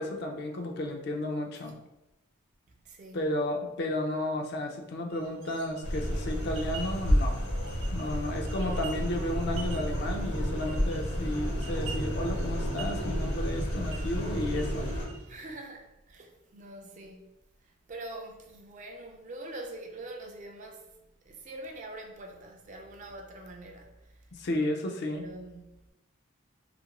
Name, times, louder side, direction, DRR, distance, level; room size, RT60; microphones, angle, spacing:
voice 1, 0.0-1.8 3.1-7.4 7.9-14.9 24.3-25.2, left 1 dB, 50° left, 0.4 m, -33 dB
voice 2, 2.7-3.2 15.3-17.3 17.6-24.3 25.1-25.9, right 1 dB, 35° right, 0.3 m, -44 dB
sound 1, 5.1-15.5, right 4 dB, 70° right, 0.6 m, -49 dB
sound 2, 5.8-15.1, equal, 80° left, 1.0 m, -31 dB
2.6 x 2.5 x 2.9 m
head